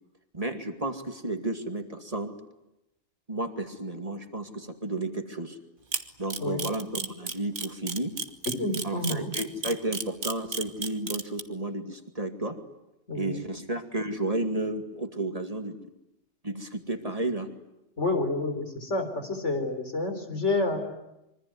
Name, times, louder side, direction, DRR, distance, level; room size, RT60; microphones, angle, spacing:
voice 1, 0.3-2.3 3.3-5.6 6.2-8.1 8.8-12.6 13.1-15.8 16.4-17.5, right 2 dB, 30° right, 5 dB, 2.3 m, -32 dB
Camera, 5.9-11.4, right 4 dB, 45° right, 1.6 m, -31 dB
voice 2, 8.5-9.3 13.1-13.4 18.0-20.8, left 2 dB, 80° left, 6 dB, 4.4 m, -29 dB
26.0 x 24.0 x 9.5 m, 0.90 s
omnidirectional pair, 1.2 m